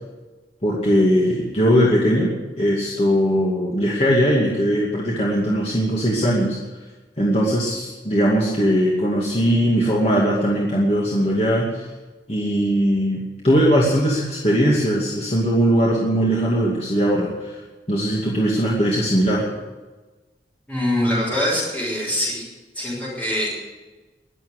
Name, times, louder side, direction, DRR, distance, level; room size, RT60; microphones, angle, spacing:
voice 1, 0.6-2.3 2.6-6.6 7.2-11.9 12.3-17.6 17.9-19.5, equal, 35° left, -4 dB, 2.4 m, -20 dB
voice 2, 20.7-22.5 22.7-23.5, left 1 dB, 10° left, -7 dB, 6.3 m, -23 dB
20.5 x 7.9 x 8.1 m, 1.2 s
head